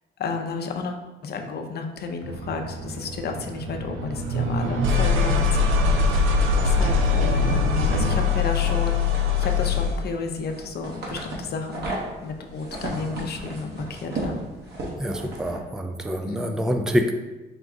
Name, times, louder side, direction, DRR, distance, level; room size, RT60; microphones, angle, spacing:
voice 1, 0.2-9.1 9.4-11.9 12.2-14.4 16.3-16.6, left 4 dB, 55° left, 4 dB, 0.6 m, -32 dB
sound 1, 2.2-10.1, left 4 dB, 80° right, 0.5 m, -23 dB
sound 2, 5.8-15.6, right 1 dB, 55° right, 1.2 m, -36 dB
voice 2, 15.0-17.1, equal, 5° right, 5 dB, 0.3 m, -26 dB
4.9 x 2.3 x 3.7 m, 1.1 s
cardioid pair, 90°, 20 cm